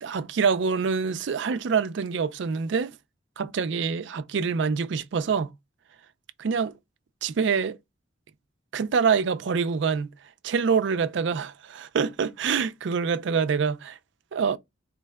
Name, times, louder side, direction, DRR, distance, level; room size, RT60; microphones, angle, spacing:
voice 1, 0.0-3.0 3.4-5.5 6.4-6.7 7.2-7.8 8.7-10.1 10.4-14.0 14.3-14.6, right 6 dB, 70° right, 0.4 m, -25 dB
4.4 x 2.2 x 3.3 m
head